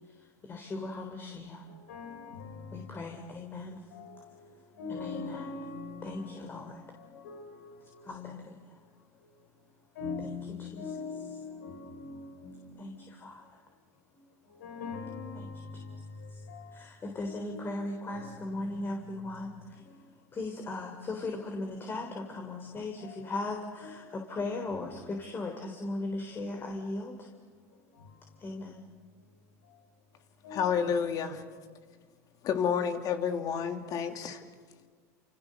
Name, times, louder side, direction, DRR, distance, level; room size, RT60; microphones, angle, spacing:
voice 1, 0.2-1.6 2.7-3.8 4.9-5.5 6.0-6.8 8.0-8.5 10.2-10.8 12.8-13.4 15.4-15.5 16.3-16.4 16.7-19.8 20.3-27.3 28.4-28.8, left 2 dB, 25° left, 3.5 m, -38 dB
voice 2, 1.6-3.0 3.6-8.1 8.6-9.6 9.9-13.8 14.1-20.4 23.0-23.4 23.8-24.2 24.6-25.0 26.1-26.6 27.5-28.5 29.2-29.9 30.4-31.0 31.3-31.4 31.7-31.8, left 4 dB, 80° left, 6.0 m, -45 dB
voice 3, 30.5-31.4 32.4-34.4, left 7 dB, 45° left, 2.9 m, -30 dB
29.5 x 28.0 x 6.7 m
supercardioid pair, 105°, 8 cm